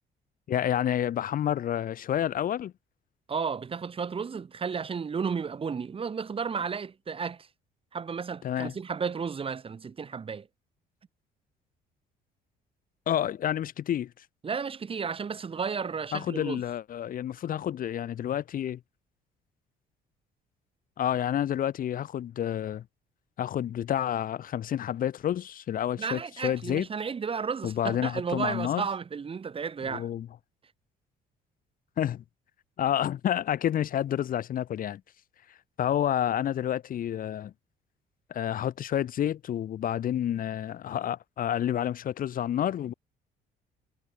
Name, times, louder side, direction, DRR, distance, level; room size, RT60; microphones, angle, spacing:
voice 1, 0.5-2.7 8.4-8.7 13.1-14.1 16.1-18.8 21.0-22.8 23.4-26.9 27.6-28.9 29.9-30.3 32.0-32.2 32.8-35.0 35.8-37.5 38.3-42.9, left 10 dB, 55° left, 2.6 m, -29 dB
voice 2, 3.3-7.5 7.9-10.5 14.4-16.6 26.0-30.1, right 6 dB, 35° right, 4.9 m, -33 dB
cardioid pair, 110°, 17 cm